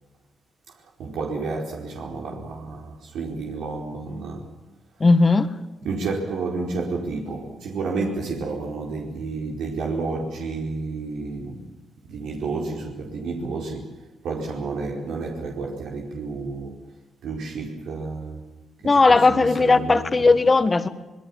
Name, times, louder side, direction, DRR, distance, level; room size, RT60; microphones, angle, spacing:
voice 1, 1.0-4.5 5.8-11.7 12.1-16.8 17.2-18.4 18.8-20.3, right 3 dB, 80° right, 4.7 m, -31 dB
voice 2, 5.0-5.5 18.8-20.9, left 3 dB, 25° left, 1.7 m, -17 dB
25.5 x 22.0 x 7.4 m
cardioid pair, 130°, 0 cm